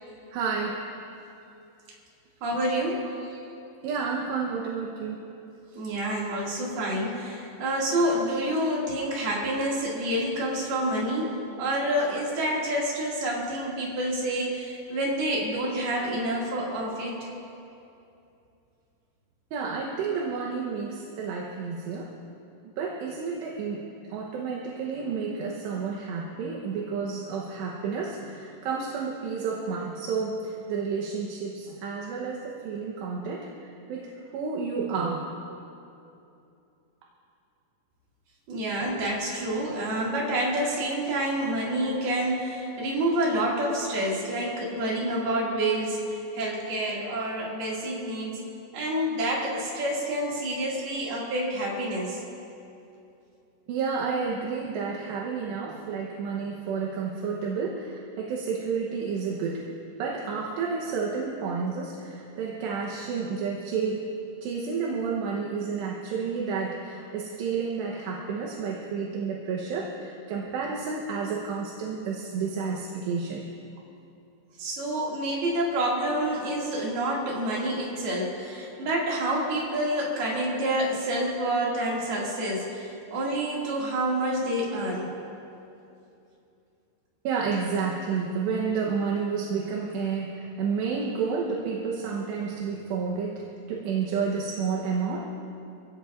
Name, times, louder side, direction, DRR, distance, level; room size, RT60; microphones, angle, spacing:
voice 1, 0.3-0.8 3.2-3.4 3.8-5.2 19.5-22.1 22.8-35.3 53.7-59.7 60.0-64.1 64.4-73.5 87.2-95.2, right 5 dB, 75° right, -2 dB, 3.1 m, -30 dB
voice 2, 2.4-3.1 5.8-17.2 38.5-46.0 46.3-48.4 48.7-52.2 74.6-85.1, right 1 dB, 60° right, -4 dB, 4.2 m, -28 dB
27.0 x 16.5 x 2.6 m, 2.7 s
omnidirectional pair, 5.5 m